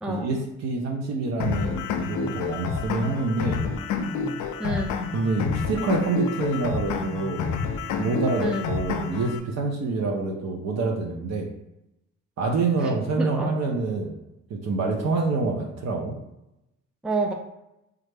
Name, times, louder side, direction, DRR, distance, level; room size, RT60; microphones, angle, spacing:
voice 1, 0.1-3.6 5.1-7.5 8.0-11.5 12.4-14.2 14.5-16.2, right 3 dB, 60° right, 1 dB, 0.6 m, -26 dB
sound 1, 1.4-9.4, left 5 dB, 75° left, 0.4 m, -28 dB
voice 2, 4.6-4.9 8.4-8.7 12.8-12.9 13.2-13.5 17.0-17.3, right 2 dB, 5° right, 2 dB, 0.3 m, -28 dB
3.2 x 2.4 x 3.3 m, 0.88 s
cardioid pair, 90°, 30 cm